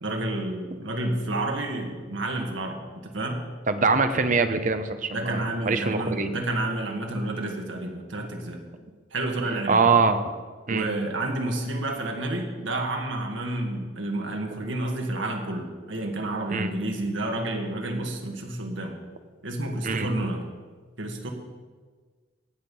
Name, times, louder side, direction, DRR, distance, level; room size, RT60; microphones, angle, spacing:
voice 1, 0.0-3.4 5.1-8.6 9.1-9.9 10.7-19.0 19.4-20.4 21.0-21.3, right 1 dB, 80° right, 2 dB, 1.9 m, -30 dB
voice 2, 3.7-6.3 9.7-10.2 10.7-10.9 16.5-16.7 19.8-20.1, right 4 dB, 45° right, 9 dB, 0.8 m, -23 dB
17.0 x 6.6 x 5.5 m, 1.5 s
head